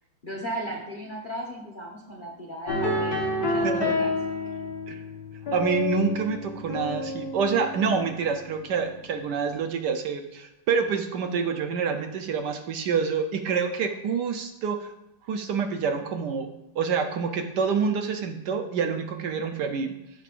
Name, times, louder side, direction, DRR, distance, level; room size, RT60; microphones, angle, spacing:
voice 1, 0.2-4.1, right 1 dB, 40° left, -2 dB, 0.8 m, -36 dB
sound 1, 2.7-8.8, left 2 dB, 55° left, 1.8 m, -29 dB
voice 2, 3.6-3.9 4.9-5.0 5.5-14.9 15.3-16.5 16.7-19.9, right 5 dB, 70° right, 6 dB, 1.2 m, -27 dB
14.0 x 5.2 x 2.5 m, 0.91 s
omnidirectional pair, 2.1 m